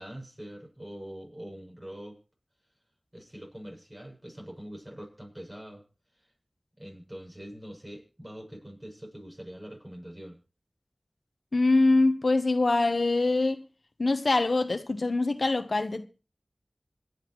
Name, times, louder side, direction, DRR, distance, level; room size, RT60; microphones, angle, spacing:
voice 1, 0.0-2.2 3.1-5.8 6.2-6.3 6.8-10.4, equal, 30° right, 7.6 m, -44 dB
voice 2, 11.5-13.6 14.0-16.1, left 2 dB, 80° left, 1.1 m, -24 dB
26.5 x 10.0 x 3.2 m
wide cardioid pair, 40°, 0 cm